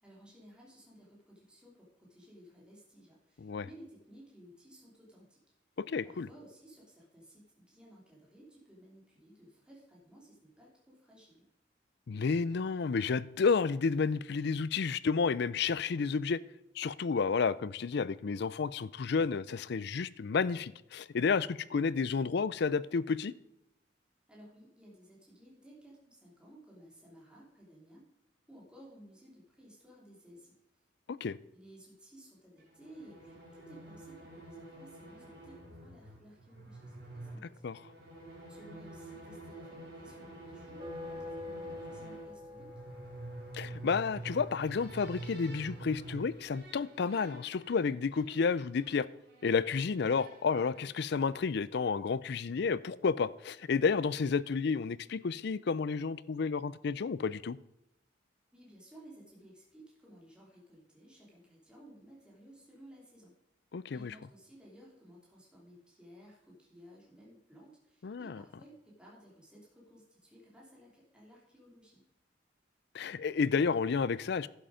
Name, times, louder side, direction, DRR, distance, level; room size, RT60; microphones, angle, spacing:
voice 1, 0.0-5.4 6.0-11.5 24.3-28.0 28.5-30.6 31.5-37.7 38.5-42.7 58.5-63.3 63.9-72.0, equal, 5° right, 3.2 m, -56 dB
voice 2, 5.8-6.3 12.1-16.4 16.8-23.3 31.1-31.4 37.6-37.8 43.5-49.1 49.4-57.6 63.7-64.1 68.0-68.4 72.9-74.5, left 5 dB, 65° left, 0.4 m, -31 dB
sound 1, 32.6-51.6, right 2 dB, 60° right, 4.9 m, -48 dB
sound 2, 40.8-46.3, left 2 dB, 30° right, 1.7 m, -47 dB
11.5 x 7.8 x 5.0 m
head